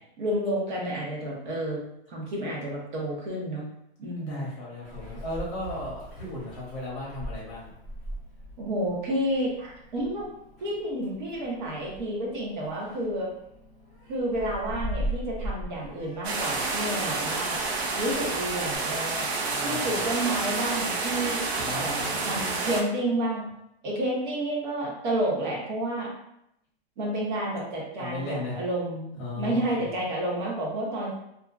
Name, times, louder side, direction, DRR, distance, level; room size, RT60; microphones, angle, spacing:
voice 1, 0.2-1.8 2.1-3.7 4.0-4.5 8.6-10.3 10.6-13.3 14.1-17.6 17.9-19.3 19.6-21.4 21.7-23.5 23.8-26.1 27.0-31.1, right 1 dB, 50° right, -3 dB, 1.0 m, -30 dB
voice 2, 4.2-7.7 19.5-19.8 21.5-22.4 28.0-28.6 29.2-29.9, left 1 dB, 30° left, -5 dB, 0.8 m, -36 dB
Meow, 4.8-18.8, equal, ahead, 0.7 m, -40 dB
sound 1, 16.2-22.8, right 3 dB, 80° right, 0.6 m, -29 dB
2.7 x 2.3 x 2.4 m, 0.79 s
supercardioid pair, 175°, 32 cm